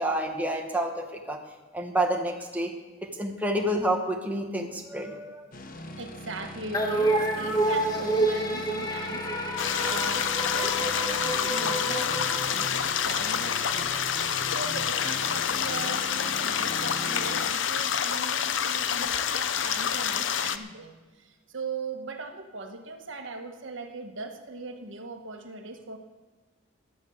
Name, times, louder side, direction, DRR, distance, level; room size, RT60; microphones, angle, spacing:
voice 1, 0.0-1.4 1.7-2.7 3.0-5.5 13.9-14.0, right 1 dB, 10° right, 2 dB, 1.3 m, -29 dB
sound 1, 5.5-17.5, left 1 dB, 45° left, 1.1 m, -40 dB
voice 2, 6.0-26.0, right 3 dB, 75° right, 5 dB, 1.4 m, -39 dB
sound 2, 6.7-13.3, right 1 dB, 20° left, 1.7 m, -29 dB
sound 3, 9.6-20.6, left 8 dB, 70° left, 0.6 m, -28 dB
12.0 x 9.4 x 7.9 m, 1.3 s
head